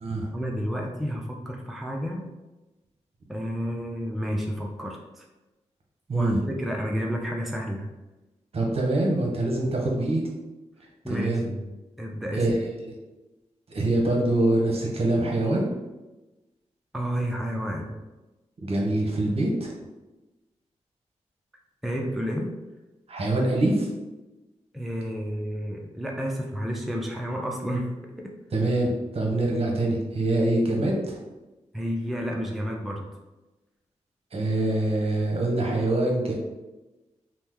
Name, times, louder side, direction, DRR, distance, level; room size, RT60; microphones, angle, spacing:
voice 1, 0.3-2.3 3.3-5.2 6.1-7.9 11.0-11.7 12.0-12.4 16.9-18.0 21.8-22.5 24.7-28.3 31.7-33.1, equal, ahead, 0 dB, 0.4 m, -31 dB
voice 2, 6.1-6.4 8.5-10.2 11.1-11.4 12.3-12.5 13.7-15.6 18.6-19.7 23.1-23.9 28.5-31.2 34.3-36.3, right 2 dB, 55° right, -1 dB, 0.8 m, -24 dB
2.9 x 2.1 x 3.4 m, 1.1 s
cardioid pair, 75°, 12 cm